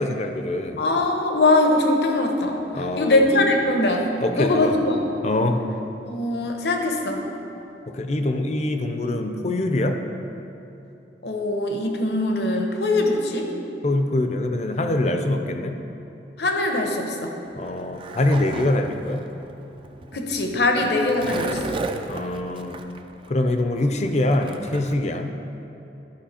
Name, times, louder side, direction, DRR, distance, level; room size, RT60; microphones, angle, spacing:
voice 1, 0.0-0.8 2.7-3.2 4.2-4.8 5.2-5.6 7.9-10.0 13.8-15.8 17.6-19.2 22.1-22.8 23.3-25.3, left 1 dB, 40° left, 6 dB, 0.5 m, -24 dB
voice 2, 0.8-5.0 6.1-7.3 11.2-13.5 16.4-17.4 20.1-21.8, left 2 dB, 70° left, 3 dB, 0.9 m, -22 dB
Skateboard, 17.5-24.9, right 3 dB, 30° right, 0.3 m, -35 dB
11.5 x 5.5 x 4.3 m, 2.9 s
head